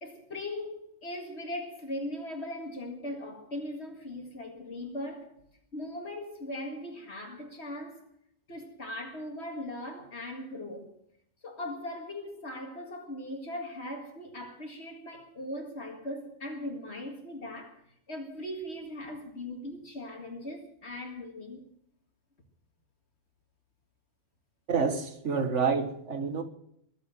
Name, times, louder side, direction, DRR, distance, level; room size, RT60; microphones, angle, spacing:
voice 1, 0.0-5.3 5.7-8.0 8.5-10.9 11.4-17.8 18.1-21.6, left 1 dB, 60° left, 2.3 m, -39 dB
voice 2, 24.7-26.4, right 5 dB, 70° right, 2.0 m, -28 dB
22.5 x 7.8 x 7.5 m
omnidirectional pair, 1.3 m